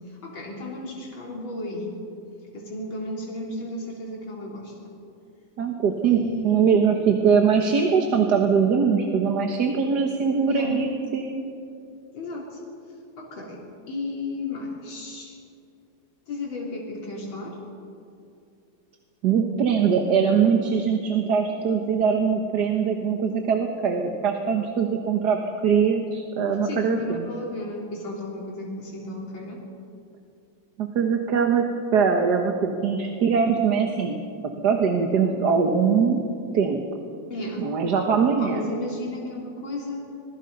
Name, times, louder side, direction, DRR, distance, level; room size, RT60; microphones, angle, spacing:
voice 1, 0.1-1.9 2.5-4.9 6.0-6.6 10.5-10.9 12.1-12.6 13.2-15.4 16.3-17.6 26.6-29.6 37.3-37.7 38.3-40.0, left 2 dB, 85° left, -3 dB, 4.1 m, -34 dB
voice 2, 5.6-6.2 6.4-11.4 19.2-25.4 25.6-27.3 30.8-31.7 31.9-34.2 34.6-36.2 36.5-36.8 37.6-38.7, right 6 dB, 60° right, 3 dB, 1.8 m, -22 dB
26.5 x 21.5 x 5.4 m, 2.5 s
omnidirectional pair, 2.1 m